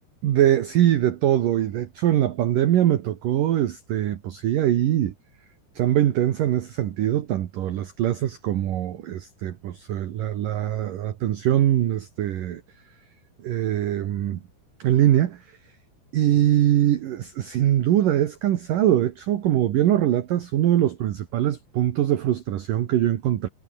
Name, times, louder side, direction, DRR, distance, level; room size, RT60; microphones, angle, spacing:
voice 1, 0.2-5.1 5.8-12.6 13.4-14.4 14.8-15.4 16.1-23.5, right 12 dB, 60° right, 2.6 m, -22 dB
omnidirectional pair, 5.1 m